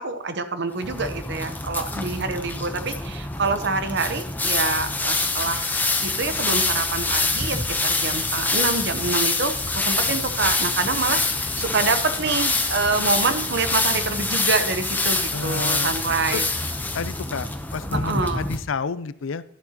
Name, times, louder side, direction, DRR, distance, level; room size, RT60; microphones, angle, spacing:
voice 1, 0.0-5.7 6.0-16.4 17.9-18.4, right 3 dB, 60° right, 9 dB, 0.9 m, -26 dB
sound 1, 0.8-18.6, left 3 dB, 10° left, 0.7 m, -25 dB
voice 2, 15.3-15.9 16.3-16.4 16.9-19.4, left 5 dB, 80° left, 16 dB, 0.5 m, -30 dB
11.5 x 10.5 x 2.9 m, 0.67 s
head